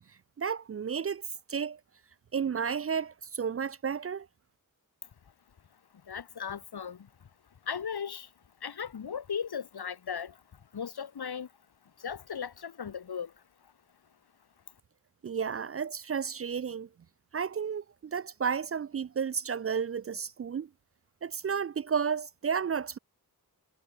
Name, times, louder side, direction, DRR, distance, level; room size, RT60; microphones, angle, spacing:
voice 1, 0.4-1.2 1.5-1.8 2.3-4.3 15.2-16.9 17.3-20.7 21.2-23.0, right 6 dB, 40° right, 0.4 m, -32 dB
voice 2, 6.1-7.1 7.7-8.3 8.6-10.4 10.7-11.5 12.0-13.3, left 7 dB, 75° left, 1.8 m, -37 dB
wide cardioid pair, 65°, 38 cm